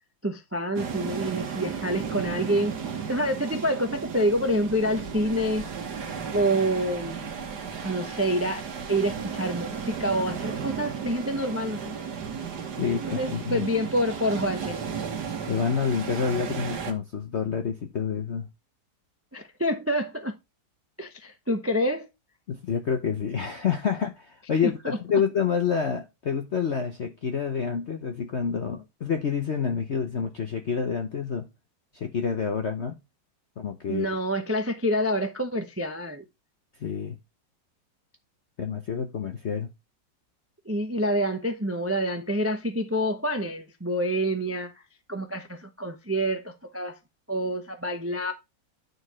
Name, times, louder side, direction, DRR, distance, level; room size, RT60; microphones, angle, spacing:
voice 1, 0.2-2.8 3.1-5.7 6.3-7.3 7.8-8.6 8.9-11.9 13.0-14.8 19.3-20.3 21.0-22.1 24.6-25.0 33.9-36.2 40.6-44.7 45.1-47.0 47.3-48.3, equal, 20° right, 0.4 m, -27 dB
sound 1, 0.8-16.9, right 6 dB, 60° right, 1.8 m, -34 dB
voice 2, 12.8-13.7 15.5-18.5 22.5-31.5 31.9-33.0 33.6-34.2 36.8-37.2 38.6-39.7, left 6 dB, 50° left, 0.8 m, -28 dB
9.7 x 4.7 x 4.7 m
omnidirectional pair, 2.0 m